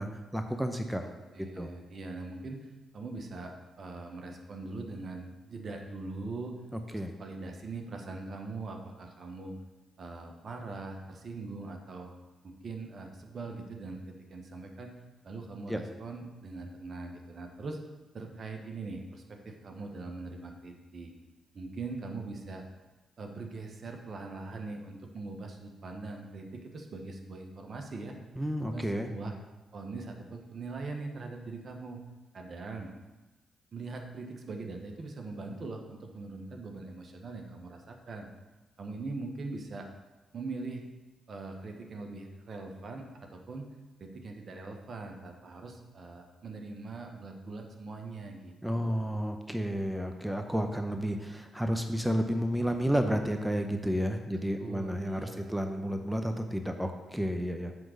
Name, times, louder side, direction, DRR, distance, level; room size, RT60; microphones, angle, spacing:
voice 1, 0.0-1.0 1.4-1.7 6.9-7.1 15.7-15.8 28.4-29.4 48.6-57.7, equal, 5° right, 5 dB, 0.8 m, -31 dB
voice 2, 1.0-6.5 6.9-9.5 10.0-12.1 12.4-14.9 15.2-17.8 18.1-21.1 21.5-22.6 23.2-28.1 28.6-29.3 29.7-32.0 32.3-32.9 33.7-38.3 38.8-39.9 40.3-40.9 41.3-43.7 44.0-48.5 48.8-48.9 54.3-55.5, right 3 dB, 55° right, 3 dB, 1.2 m, -41 dB
7.8 x 3.8 x 6.4 m, 1.1 s
hypercardioid pair, 45°, 0 cm